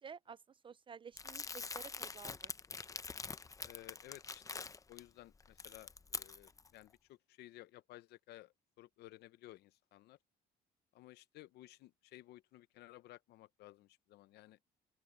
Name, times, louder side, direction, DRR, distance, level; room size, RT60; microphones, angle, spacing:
voice 1, 0.0-2.5, right 6 dB, 30° right, 0.4 m, -52 dB
Crumpling crinkling, 1.2-5.0 5.4-6.7, left 4 dB, 20° left, 0.6 m, -45 dB
voice 2, 3.6-10.2 10.9-14.6, left 16 dB, 75° left, 0.7 m, -57 dB
open air
cardioid pair, 110°, 17 cm